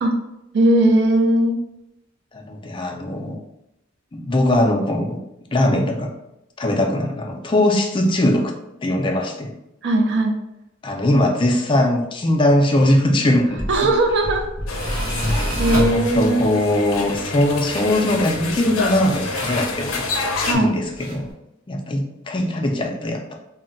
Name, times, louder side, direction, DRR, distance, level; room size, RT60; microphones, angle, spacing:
voice 1, 0.5-1.6 9.8-10.4 13.7-14.5 15.6-16.4 20.4-20.8, right 1 dB, 60° right, 4 dB, 0.5 m, -18 dB
voice 2, 2.3-3.4 4.1-5.2 5.5-6.1 6.6-8.5 8.8-9.5 10.8-13.9 15.9-20.0 20.5-21.3 21.7-23.3, left 1 dB, 25° left, 2 dB, 0.4 m, -20 dB
Tools, 13.4-21.3, equal, 45° right, 1.3 m, -29 dB
sound 1, 14.7-20.5, left 3 dB, 85° left, 0.4 m, -28 dB
2.2 x 2.1 x 3.8 m, 0.87 s
head